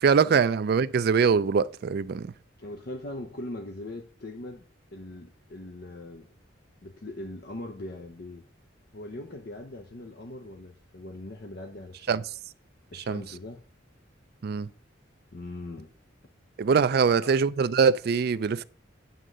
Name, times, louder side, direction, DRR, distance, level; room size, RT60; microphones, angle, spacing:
voice 1, 0.0-2.3 12.1-12.2 12.9-13.2 14.4-14.7 16.6-18.6, right 6 dB, 50° right, 0.3 m, -23 dB
voice 2, 2.6-4.6 4.9-6.3 6.8-8.4 8.9-12.2 12.9-13.6 15.3-15.9 16.9-17.4, left 1 dB, 50° left, 0.7 m, -40 dB
9.3 x 3.7 x 6.6 m
head